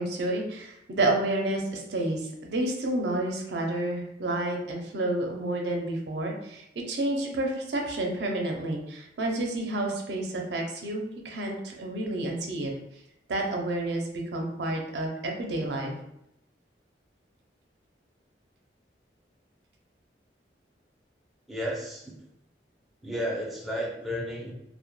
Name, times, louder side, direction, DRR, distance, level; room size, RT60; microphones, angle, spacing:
voice 1, 0.0-12.7 13.3-14.0 14.3-15.9, right 1 dB, 70° right, 1 dB, 0.4 m, -30 dB
voice 2, 21.5-22.1 23.0-24.5, equal, ahead, -5 dB, 0.4 m, -32 dB
2.1 x 2.0 x 3.0 m, 0.79 s
head